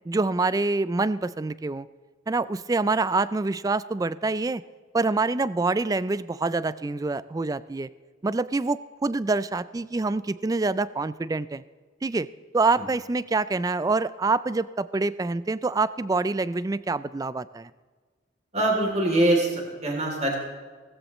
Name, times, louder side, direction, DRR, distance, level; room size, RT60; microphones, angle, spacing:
voice 1, 0.1-1.9 2.3-4.6 4.9-7.9 8.2-11.6 12.0-12.3 12.5-17.7, right 3 dB, 20° right, 17 dB, 0.3 m, -26 dB
voice 2, 18.5-20.4, right 1 dB, 35° right, 0 dB, 3.0 m, -23 dB
17.0 x 15.5 x 3.1 m, 1.5 s
head